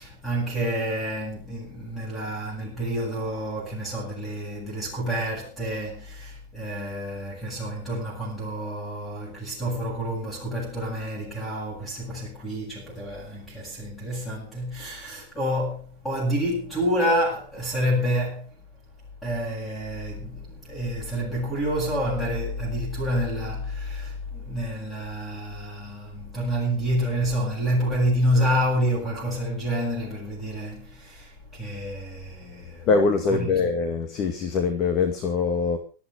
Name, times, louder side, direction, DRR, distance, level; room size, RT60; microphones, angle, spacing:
voice 1, 0.0-18.6 19.2-32.9 33.3-33.6, equal, 5° left, 7.8 m, -28 dB
voice 2, 32.9-35.8, left 4 dB, 30° left, 2.1 m, -23 dB
18.0 x 14.0 x 5.1 m
supercardioid pair, 170°, 0 cm